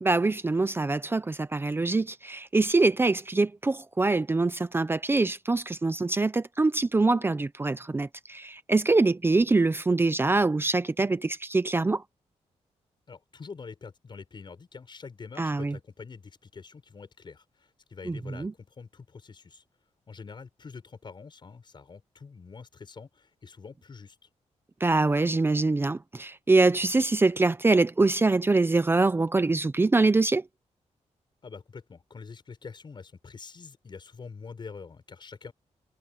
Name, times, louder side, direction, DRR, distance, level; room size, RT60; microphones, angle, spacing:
voice 1, 0.0-12.0 15.4-15.8 18.1-18.5 24.8-30.4, right 3 dB, 20° right, 0.6 m, -24 dB
voice 2, 13.1-19.6 20.1-24.2 31.4-35.5, left 5 dB, 40° left, 6.6 m, -45 dB
wide cardioid pair, 145°, 12 cm